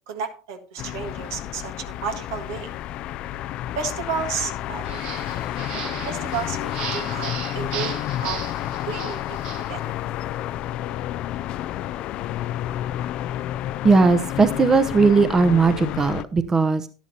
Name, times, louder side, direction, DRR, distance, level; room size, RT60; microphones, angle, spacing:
voice 1, 0.1-2.7 3.8-5.0 6.0-8.4 8.9-9.4 9.7-9.8, right 6 dB, 70° right, 6 dB, 1.7 m, -32 dB
sound 1, 0.8-16.2, left 13 dB, 50° left, 0.4 m, -30 dB
sound 2, 4.8-9.7, right 8 dB, 55° right, 1.2 m, -36 dB
voice 2, 13.8-16.9, right 4 dB, 25° right, 11 dB, 0.9 m, -18 dB
11.5 x 11.0 x 2.9 m, 0.37 s
hypercardioid pair, 80°, 2 cm